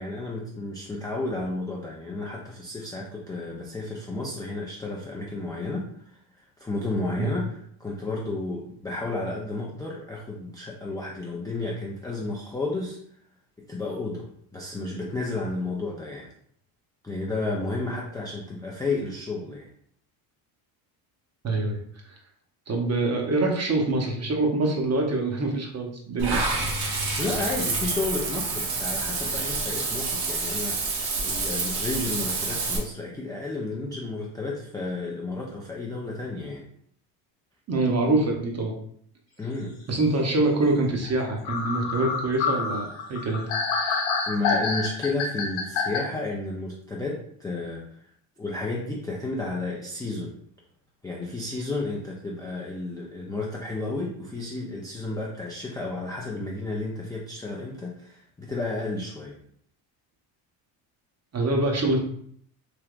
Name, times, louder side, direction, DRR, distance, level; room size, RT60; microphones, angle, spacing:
voice 1, 0.0-6.2 6.6-13.0 13.6-16.3 17.0-19.7 27.2-30.9 31.2-36.7 39.4-39.8 44.3-47.8 48.4-50.4 51.0-59.4, left 2 dB, 10° left, -3 dB, 0.3 m, -32 dB
voice 2, 21.4-21.8 22.1-22.2 22.7-26.6 37.7-38.8 39.9-44.0 61.3-62.0, right 2 dB, 35° right, 1 dB, 0.8 m, -25 dB
Water / Bathtub (filling or washing), 26.2-32.8, right 3 dB, 60° right, 1.1 m, -28 dB
sound 1, 41.0-41.1 41.5-46.0, left 5 dB, 85° left, 0.8 m, -27 dB
3.4 x 2.8 x 2.4 m, 0.64 s
supercardioid pair, 95°, 47 cm